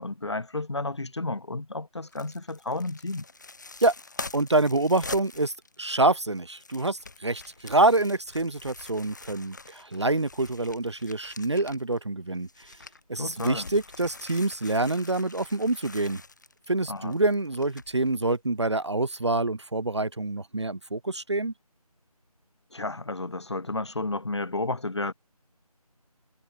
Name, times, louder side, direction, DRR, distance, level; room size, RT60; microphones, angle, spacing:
voice 1, 0.0-3.2 13.2-13.7 16.9-17.1 22.7-25.1, left 2 dB, 45° left, 4.6 m, -32 dB
sound 1, 2.0-12.0 12.3-18.4 18.7-18.8, left 3 dB, 30° left, 4.6 m, -45 dB
voice 2, 4.3-5.5 5.8-12.5 13.1-16.2 16.7-21.5, right 2 dB, 45° right, 1.4 m, -26 dB
figure-of-eight pair, 175°, 20 cm